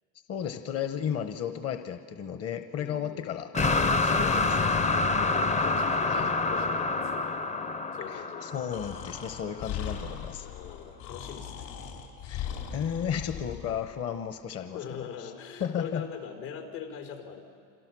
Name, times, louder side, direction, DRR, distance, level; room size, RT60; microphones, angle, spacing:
voice 1, 0.3-3.5 4.0-4.8 6.1-6.3 8.1-10.5 12.2-15.3 15.6-16.0, left 8 dB, 40° left, 8 dB, 1.1 m, -34 dB
voice 2, 2.8-3.2 4.2-7.4 7.9-8.7 9.5-9.7 10.4-11.7 14.7-17.4, left 7 dB, 85° left, 4 dB, 5.3 m, -42 dB
sound 1, 3.5-9.6, left 3 dB, 20° left, 0.6 m, -27 dB
Breathing, 8.7-13.8, left 8 dB, 70° left, 4.5 m, -39 dB
27.5 x 26.5 x 6.3 m, 2.4 s
supercardioid pair, 115°, 38 cm